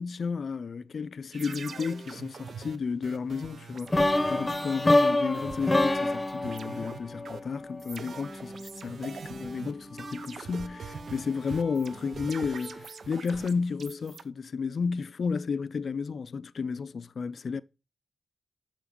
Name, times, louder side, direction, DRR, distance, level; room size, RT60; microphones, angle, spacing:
voice 1, 0.0-17.6, left 5 dB, 65° left, 0.4 m, -32 dB
sound 1, 1.3-6.2 6.4-14.2, right 5 dB, 70° right, 0.6 m, -44 dB
sound 2, 3.9-7.9, left 2 dB, 25° left, 0.9 m, -26 dB
sound 3, 8.0-13.1, equal, 10° right, 1.6 m, -46 dB
6.9 x 5.9 x 5.1 m
supercardioid pair, 45°, 0 cm